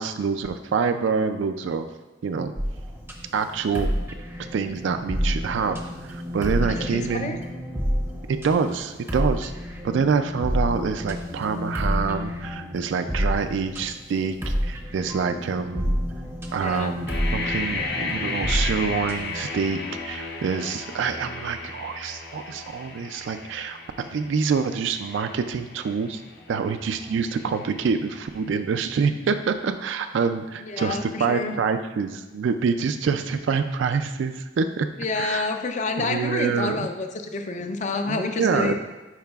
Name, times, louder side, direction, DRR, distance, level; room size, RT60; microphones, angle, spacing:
voice 1, 0.0-1.9 2.2-2.5 3.3-3.9 4.5-7.4 8.3-9.5 9.8-16.0 16.5-26.2 26.5-34.9 35.2-35.5 36.0-36.9 38.1-38.7, right 5 dB, 75° right, 7 dB, 0.3 m, -26 dB
sound 1, 2.6-19.4, equal, 10° right, 0.6 m, -29 dB
voice 2, 6.6-7.4 15.3-15.5 16.6-16.9 30.6-31.6 35.0-38.7, left 3 dB, 40° left, 6 dB, 0.5 m, -29 dB
sound 2, 17.1-28.9, left 3 dB, 55° left, 0.8 m, -35 dB
10.5 x 4.7 x 2.3 m, 1.1 s
head